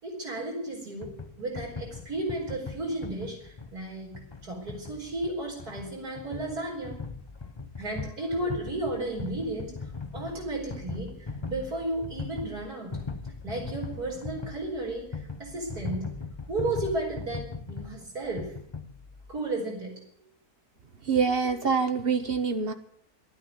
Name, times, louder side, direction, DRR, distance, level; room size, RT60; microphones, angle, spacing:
voice 1, 0.0-1.1 1.4-7.0 7.8-9.8 10.1-13.0 13.4-16.1 16.5-18.5 19.3-20.0 21.1-21.2, right 2 dB, 75° right, -1 dB, 5.5 m, -33 dB
sound 1, 1.0-19.4, left 4 dB, 30° left, 0.5 m, -40 dB
voice 2, 21.1-22.7, right 5 dB, 45° right, 9 dB, 1.1 m, -25 dB
13.0 x 9.4 x 9.6 m, 0.65 s
omnidirectional pair, 1.6 m